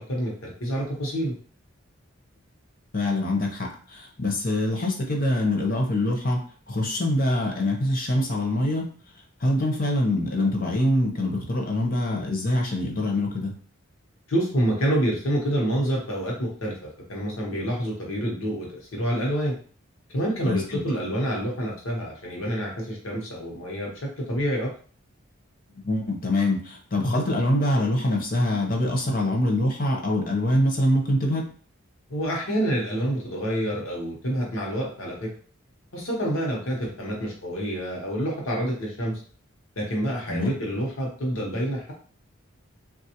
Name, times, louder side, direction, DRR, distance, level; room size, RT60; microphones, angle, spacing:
voice 1, 0.0-1.4 14.3-19.5 20.1-23.9 24.2-24.7 32.1-35.3 35.9-39.2 39.8-41.9, equal, 80° left, -2 dB, 0.9 m, -27 dB
voice 2, 2.9-6.4 6.7-8.9 9.4-13.5 20.5-20.8 25.8-31.4 40.3-40.5, left 1 dB, 45° left, 1 dB, 0.7 m, -24 dB
3.3 x 2.3 x 2.8 m, 0.43 s
head